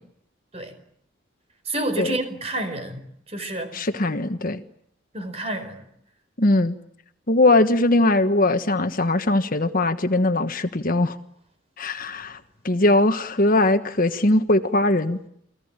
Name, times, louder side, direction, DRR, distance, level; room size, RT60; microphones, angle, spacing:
voice 1, 1.6-3.0 3.3-3.8 5.1-5.8, right 1 dB, 30° right, 8 dB, 4.8 m, -29 dB
voice 2, 3.7-4.6 6.4-6.8 7.3-11.2 11.8-12.4 12.6-15.2, left 2 dB, 45° left, 9 dB, 1.3 m, -20 dB
29.5 x 19.5 x 8.9 m, 0.72 s
head